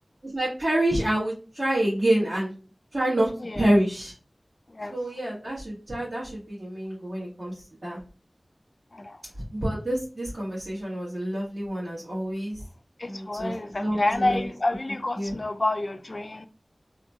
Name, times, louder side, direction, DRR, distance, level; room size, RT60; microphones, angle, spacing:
voice 1, 0.2-2.5 2.9-4.1 4.9-7.6 7.8-8.0 9.5-12.6 13.0-14.5 15.1-15.3, right 1 dB, 65° right, 1.4 m, -27 dB
voice 2, 13.0-16.5, left 2 dB, 60° left, 0.3 m, -28 dB
2.9 x 2.2 x 2.6 m
wide cardioid pair, 55°, 0 cm